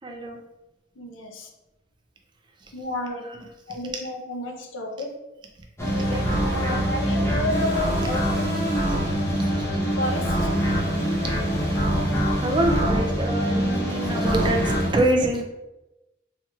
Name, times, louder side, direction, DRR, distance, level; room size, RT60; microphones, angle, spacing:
voice 1, 0.0-0.4 3.3-3.4 6.1-6.3 9.4-9.7 12.4-15.4, right 1 dB, 25° right, 0.4 m, -25 dB
voice 2, 1.0-1.5 2.7-3.3 3.7-5.2 6.4-9.1 10.0-10.6, left 1 dB, 85° left, 0.6 m, -31 dB
sound 1, 5.8-14.9, equal, 15° left, 0.7 m, -24 dB
4.4 x 2.9 x 2.3 m
head